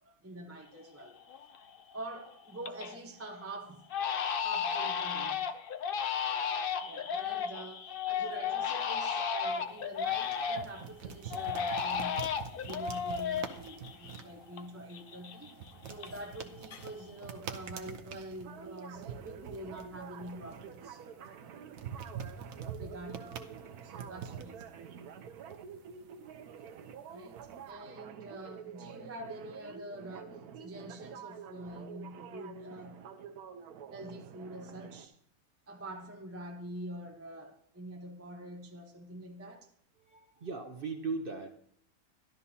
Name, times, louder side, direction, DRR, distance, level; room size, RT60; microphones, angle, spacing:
voice 1, 0.0-1.2 1.9-3.9 4.4-5.8 6.8-12.3 12.6-15.5 15.9-21.3 22.8-24.9 27.1-33.1 33.9-35.2 35.7-39.7, right 1 dB, 15° right, 0.6 m, -46 dB
Crying sobbing, 0.7-0.8 1.3-1.8 2.2-3.0 3.3-3.5 3.9-10.8 11.3-14.6 14.9-16.4 16.7-17.2, left 7 dB, 65° left, 0.5 m, -34 dB
sound 1, 9.5-27.7, right 7 dB, 65° right, 1.2 m, -47 dB
sound 2, 18.4-35.1, right 7 dB, 85° right, 1.3 m, -48 dB
voice 2, 40.0-41.5, right 4 dB, 45° right, 1.0 m, -38 dB
12.5 x 12.0 x 2.8 m
omnidirectional pair, 1.6 m